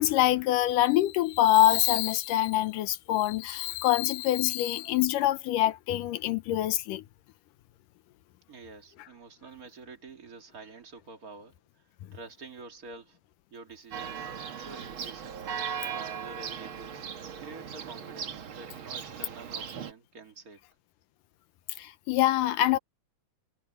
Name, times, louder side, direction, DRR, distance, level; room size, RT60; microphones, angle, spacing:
voice 1, 0.0-7.0 21.8-22.8, left 14 dB, 80° left, 2.4 m, -25 dB
voice 2, 8.5-11.5 12.1-13.2 13.5-14.3 14.6-15.5 15.8-17.1 17.4-20.6, right 4 dB, 30° right, 2.1 m, -47 dB
Church bell, 13.9-19.9, right 7 dB, 50° right, 1.7 m, -38 dB
omnidirectional pair, 3.8 m